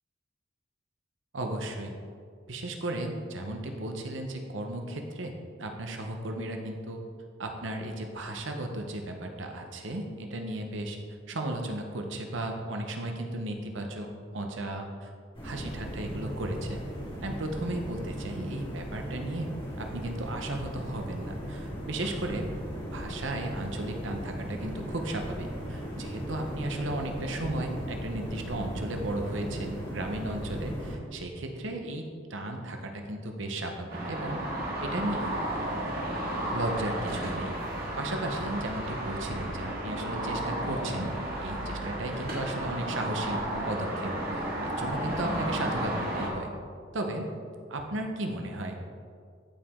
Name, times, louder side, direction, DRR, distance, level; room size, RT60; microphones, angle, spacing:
voice 1, 1.3-2.0 2.5-7.0 7.4-11.0 11.3-14.1 14.3-15.1 15.4-16.8 17.2-19.5 19.8-22.5 22.9-32.0 32.3-34.4 34.8-35.2 36.5-37.5 38.0-41.1 41.4-43.4 43.7-46.5 46.9-47.3 47.7-48.8, right 1 dB, 70° right, 3 dB, 0.9 m, -35 dB
sound 1, 15.3-31.0, equal, 30° left, 2.4 m, -38 dB
sound 2, 33.9-46.3, right 1 dB, 50° right, 2.0 m, -33 dB
14.0 x 5.0 x 3.7 m, 2.2 s
head